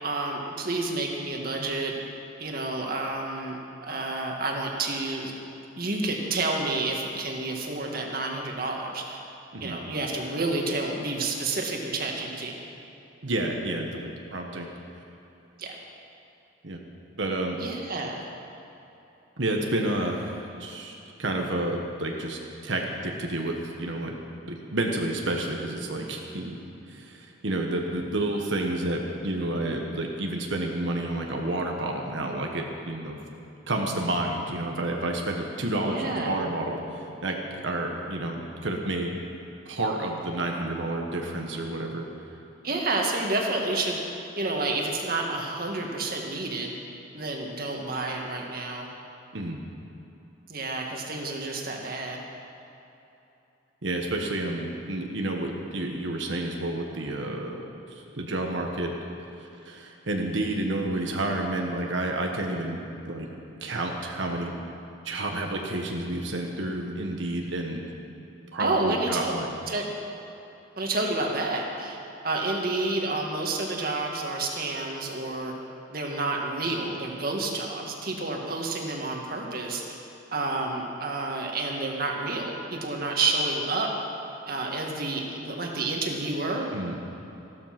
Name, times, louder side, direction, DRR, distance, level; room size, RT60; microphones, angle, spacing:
voice 1, 0.0-1.9 2.4-5.3 5.8-9.2 9.6-12.6 15.6-15.8 17.6-18.2 35.8-36.4 42.6-44.0 44.4-46.7 47.1-48.9 50.5-52.2 68.6-69.3 69.7-69.9 70.8-72.0 72.2-75.5 75.9-80.0 80.3-83.9 84.5-86.7, right 2 dB, 50° right, 0 dB, 1.9 m, -29 dB
voice 2, 13.2-14.7 16.6-16.8 17.2-17.6 19.4-24.1 24.4-26.6 26.9-33.2 33.7-37.3 37.6-39.1 39.6-42.1 49.3-49.6 53.8-57.6 57.9-58.9 59.4-63.3 63.6-64.5 65.0-67.8 68.5-69.5 86.7-87.0, right 1 dB, 70° right, 1 dB, 1.4 m, -30 dB
15.0 x 12.5 x 6.0 m, 3.0 s
head